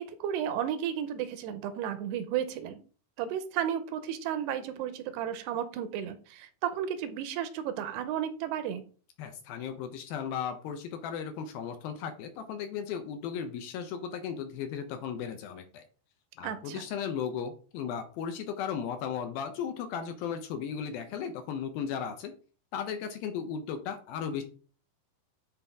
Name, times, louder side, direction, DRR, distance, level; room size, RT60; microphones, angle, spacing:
voice 1, 0.0-2.8 3.2-8.8 16.4-16.8, right 9 dB, 85° right, 11 dB, 2.8 m, -33 dB
voice 2, 9.2-15.8 16.4-22.3 22.7-24.4, left 7 dB, 75° left, 7 dB, 2.4 m, -36 dB
10.0 x 4.4 x 3.5 m, 0.38 s
omnidirectional pair, 4.8 m